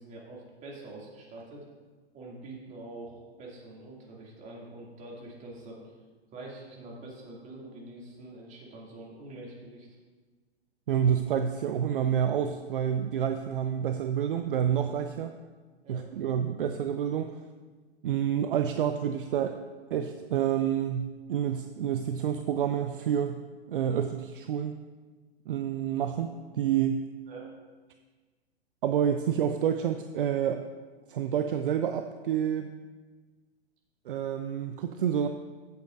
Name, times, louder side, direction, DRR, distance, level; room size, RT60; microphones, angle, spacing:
voice 1, 0.0-1.7 2.1-5.9 6.3-10.0 15.8-16.1 27.3-27.5, right 2 dB, 20° right, -3 dB, 2.5 m, -45 dB
voice 2, 10.9-15.3 15.9-17.4 18.0-19.6 19.9-23.4 23.7-24.8 25.5-26.3 26.5-27.0 28.8-30.6 31.1-32.7 34.1-35.3, right 9 dB, 55° right, 8 dB, 0.6 m, -28 dB
14.5 x 8.3 x 2.6 m, 1.4 s
figure-of-eight pair, 115°, 32 cm